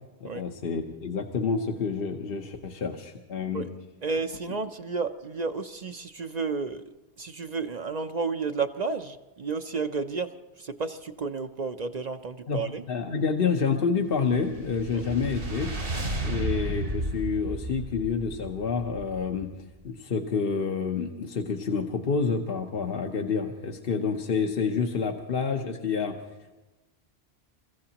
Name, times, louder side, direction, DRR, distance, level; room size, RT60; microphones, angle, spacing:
voice 1, 0.3-3.7 12.5-15.7 16.2-19.5 19.8-26.2, left 5 dB, 60° left, 2 dB, 1.1 m, -28 dB
voice 2, 4.0-6.8 7.2-10.3 10.6-12.8 14.9-15.0 16.3-16.4, right 4 dB, 45° right, 8 dB, 0.6 m, -32 dB
sound 1, 14.2-19.6, right 2 dB, 85° right, 2.6 m, -33 dB
29.5 x 15.0 x 2.9 m, 1.1 s
omnidirectional pair, 1.1 m